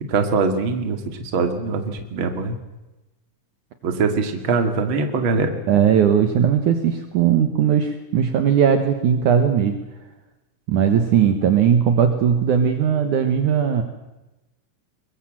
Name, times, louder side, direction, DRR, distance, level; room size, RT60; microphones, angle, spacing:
voice 1, 0.1-2.6 3.8-5.5, right 4 dB, 50° right, 6 dB, 1.5 m, -22 dB
voice 2, 5.7-9.8 10.7-13.8, right 8 dB, 85° right, 7 dB, 1.7 m, -18 dB
22.5 x 22.0 x 7.7 m, 1.0 s
omnidirectional pair, 5.8 m